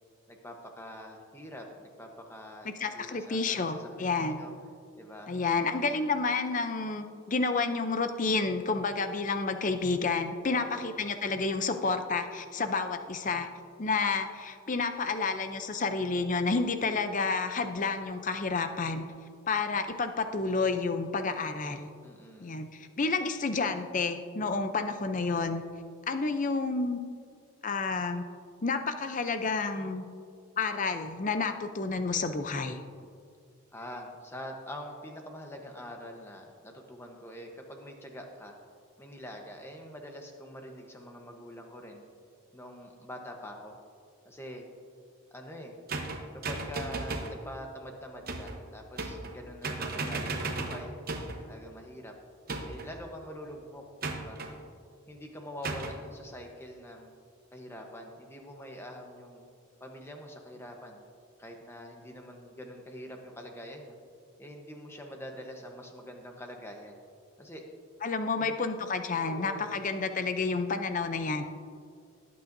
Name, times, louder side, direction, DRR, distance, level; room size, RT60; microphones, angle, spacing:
voice 1, 0.3-2.7 2.9-4.5 5.0-5.3 10.5-11.0 22.0-22.6 33.7-38.6 39.0-42.1 42.5-43.8 44.2-44.6 45.3-45.7 46.3-50.9 51.4-52.1 52.6-54.4 55.1-57.1 57.5-59.5 59.8-61.0 61.4-64.0 64.4-67.0 67.4-67.6 68.4-68.6 69.2-69.7, equal, 10° left, 2 dB, 1.0 m, -45 dB
voice 2, 2.6-4.4 5.3-13.5 13.8-19.0 19.5-21.9 22.4-25.6 26.1-27.0 27.6-28.2 28.6-30.0 30.6-32.8 68.0-71.4, left 4 dB, 35° left, 8 dB, 0.5 m, -30 dB
sound 1, 45.9-47.4 48.3-48.6 49.0-49.4 49.6-51.4 52.5-53.0 54.0-54.5 55.6-56.0, right 3 dB, 45° right, 0.9 m, -35 dB
18.5 x 8.5 x 2.7 m, 2.3 s
head